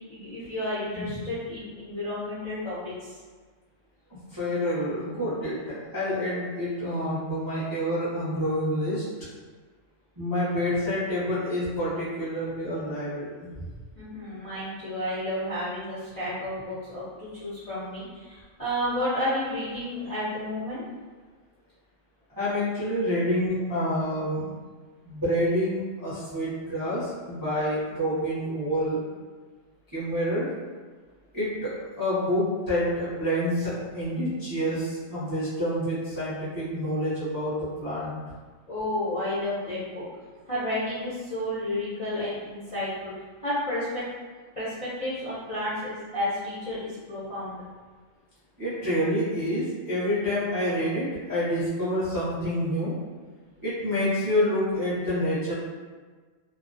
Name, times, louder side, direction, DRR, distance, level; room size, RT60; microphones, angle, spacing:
voice 1, 0.1-3.2 14.0-20.8 38.7-40.1 40.5-43.1 43.4-44.0 44.6-47.6, left 1 dB, 40° left, -12 dB, 0.5 m, -31 dB
voice 2, 0.9-1.3 4.3-9.0 10.2-13.5 22.4-24.5 25.0-29.0 29.9-30.4 31.3-38.1 48.6-52.9 53.6-55.5, equal, 25° right, -11 dB, 0.5 m, -28 dB
2.3 x 2.1 x 2.5 m, 1.4 s
omnidirectional pair, 1.3 m